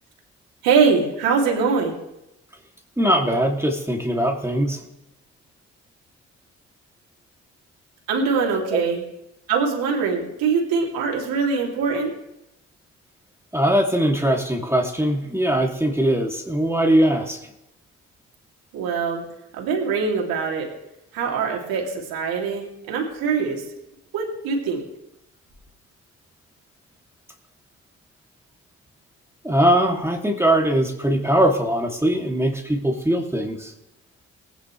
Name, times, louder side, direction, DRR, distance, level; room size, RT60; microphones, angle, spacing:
voice 1, 0.6-2.0 8.1-9.0 9.5-12.1 18.7-19.2 19.6-20.7 21.1-23.6 24.1-24.8, right 5 dB, 80° right, 0 dB, 2.9 m, -22 dB
voice 2, 3.0-4.8 13.5-17.4 29.4-33.7, right 1 dB, 5° right, 0 dB, 2.5 m, -21 dB
19.5 x 10.0 x 3.2 m, 0.87 s
hypercardioid pair, 45°, 35 cm